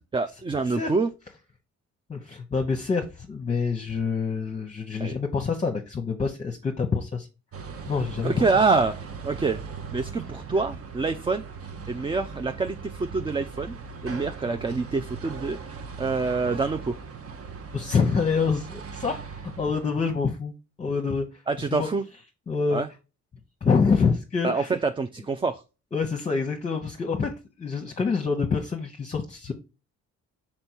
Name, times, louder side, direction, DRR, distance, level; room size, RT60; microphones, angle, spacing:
voice 1, 0.1-1.1 5.0-5.2 8.2-9.0 9.2-9.6 9.9-11.5 11.9-13.8 14.0-15.6 16.0-17.0 21.5-22.0 22.7-22.9 24.4-24.6 25.0-25.6, right 4 dB, 15° right, 9 dB, 0.3 m, -26 dB
voice 2, 2.1-7.3 7.9-8.5 17.7-20.5 20.8-21.9 22.5-22.8 23.6-24.8 25.9-29.5, left 5 dB, 25° left, 2 dB, 0.8 m, -26 dB
sound 1, 7.5-20.0, right 5 dB, 50° right, 0.9 m, -39 dB
5.3 x 4.4 x 4.5 m, 0.30 s
cardioid pair, 90°, 30 cm